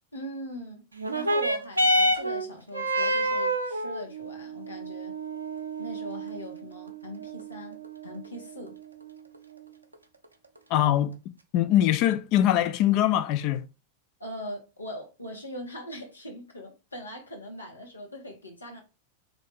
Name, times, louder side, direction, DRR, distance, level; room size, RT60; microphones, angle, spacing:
voice 1, 0.1-0.9 1.1-5.2 5.8-8.7 14.2-18.8, equal, 80° left, 1.0 m, -41 dB
sound 1, 1.0-9.9 10.8-10.9, right 1 dB, 80° right, 0.5 m, -29 dB
voice 2, 10.7-11.2 11.5-13.6, left 12 dB, 40° left, 0.3 m, -22 dB
3.4 x 2.5 x 3.5 m
figure-of-eight pair, 90°, 0 cm